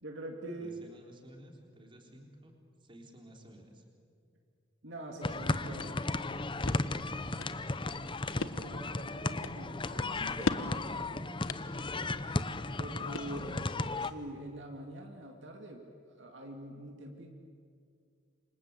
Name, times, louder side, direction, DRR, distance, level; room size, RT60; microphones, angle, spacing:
voice 1, 0.0-0.8 4.8-6.0 8.4-11.3 12.8-17.3, right 1 dB, 60° right, 2 dB, 2.5 m, -45 dB
voice 2, 0.6-2.5 2.8-3.8 5.5-6.0 6.6-7.6 12.8-13.5, equal, 25° right, 1 dB, 3.9 m, -54 dB
sound 1, 5.2-14.1, left 2 dB, 25° left, 0.8 m, -35 dB
sound 2, 6.2-13.7, left 3 dB, 80° left, 1.1 m, -41 dB
28.5 x 25.5 x 8.3 m, 2.3 s
head